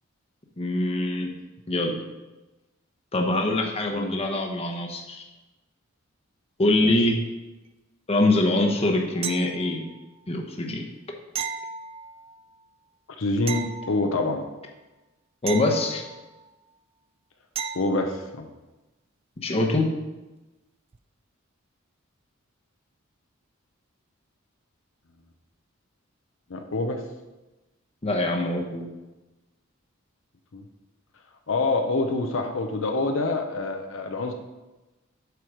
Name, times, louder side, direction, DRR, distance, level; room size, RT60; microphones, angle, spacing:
voice 1, 0.6-1.3 1.7-1.9 3.1-5.2 6.6-7.2 8.1-9.8 10.3-10.8 15.4-16.0 19.4-19.9 28.0-28.9, left 2 dB, 30° left, 2 dB, 0.9 m, -24 dB
sound 1, 9.2-10.0 11.3-12.4 13.5-14.5 15.5-16.5 17.6-18.2 20.9-21.0, right 7 dB, 30° right, 0.3 m, -35 dB
voice 2, 13.2-14.5 17.7-18.5 26.5-27.0 30.5-30.6 31.5-34.3, left 2 dB, 70° left, 5 dB, 0.7 m, -26 dB
8.0 x 4.6 x 5.0 m, 1.1 s
head